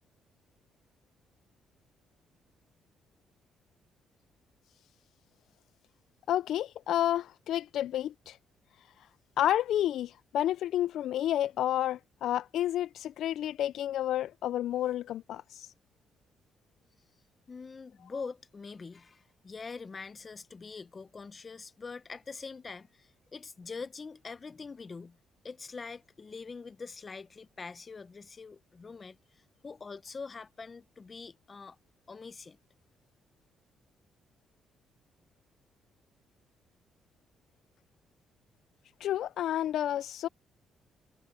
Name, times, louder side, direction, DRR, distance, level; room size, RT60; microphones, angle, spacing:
voice 1, 6.3-8.4 9.4-15.7 39.0-40.3, left 12 dB, 75° left, 0.3 m, -30 dB
voice 2, 17.5-25.2 25.4-31.8 32.1-32.6, left 4 dB, 35° left, 0.8 m, -44 dB
cardioid pair, 90°, 0 cm